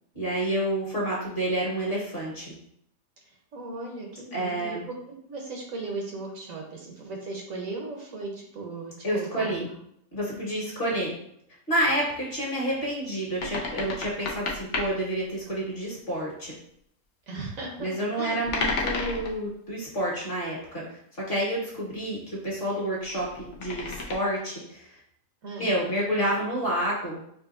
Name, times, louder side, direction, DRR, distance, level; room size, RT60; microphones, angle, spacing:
voice 1, 0.1-2.5 4.3-4.8 9.0-9.7 10.1-11.1 11.7-16.5 17.8-21.0 21.3-25.0 25.6-27.2, right 1 dB, 40° left, -5 dB, 1.6 m, -29 dB
voice 2, 3.5-4.9 5.3-9.6 10.9-11.1 17.3-17.9 18.2-18.4 25.4-25.7, right 3 dB, 65° right, 0 dB, 1.2 m, -37 dB
sound 1, 13.4-14.9 18.4-19.5 23.1-24.1, left 3 dB, 60° left, 1.0 m, -31 dB
5.2 x 2.7 x 2.5 m, 0.70 s
omnidirectional pair, 1.5 m